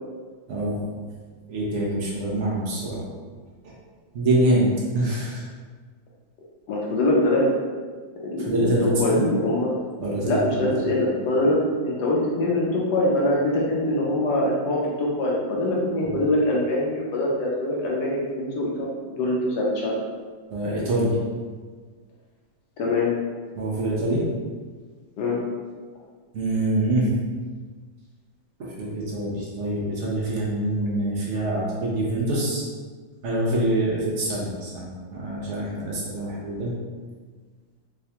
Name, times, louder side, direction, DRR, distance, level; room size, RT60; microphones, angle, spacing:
voice 1, 1.5-3.0 3.6-3.7 4.1-5.4 8.5-9.3 10.0-10.7 20.5-21.2 23.6-24.2 26.3-27.1 28.6-32.6 33.2-36.7, right 1 dB, 85° right, -4 dB, 0.6 m, -25 dB
voice 2, 6.7-7.5 8.2-9.7 10.3-20.0 22.8-23.1 25.2-25.4, left 1 dB, 70° left, -3 dB, 1.1 m, -23 dB
4.7 x 2.2 x 2.8 m, 1.5 s
omnidirectional pair, 2.1 m